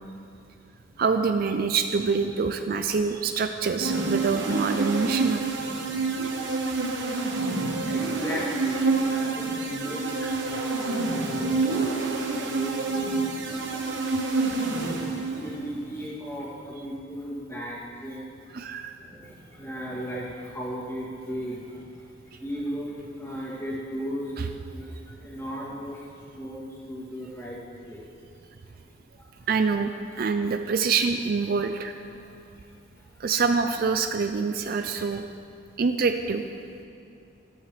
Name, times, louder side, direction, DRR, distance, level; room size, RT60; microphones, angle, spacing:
voice 1, 1.0-5.4 18.5-18.9 24.4-24.5 29.5-29.9 30.2-31.9 33.2-35.3 35.8-36.4, right 5 dB, 45° right, 7 dB, 0.4 m, -25 dB
sound 1, 3.8-15.6, right 3 dB, 65° right, 1.2 m, -28 dB
voice 2, 5.7-6.6 6.9-7.0 7.2-7.4 7.8-13.4 13.9-14.2 14.7-18.3 18.6-18.7 19.0-22.1 22.4-26.0 26.4-27.6 27.9-28.1 29.2-29.3 32.3-32.4, equal, 15° left, -7 dB, 2.4 m, -36 dB
13.5 x 13.5 x 3.3 m, 2.5 s
head